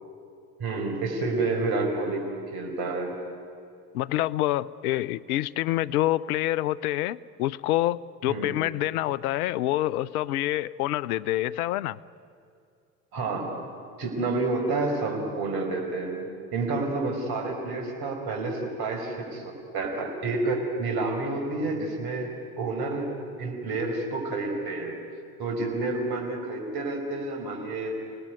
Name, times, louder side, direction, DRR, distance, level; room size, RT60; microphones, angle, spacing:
voice 1, 0.6-3.2 8.3-8.5 13.1-13.5 14.0-22.3 22.6-25.0 25.4-28.0, right 3 dB, 55° right, 3 dB, 5.2 m, -29 dB
voice 2, 3.9-12.0, left 15 dB, 70° left, 20 dB, 0.8 m, -27 dB
28.0 x 19.5 x 9.4 m, 2.4 s
hypercardioid pair, 75°, 45 cm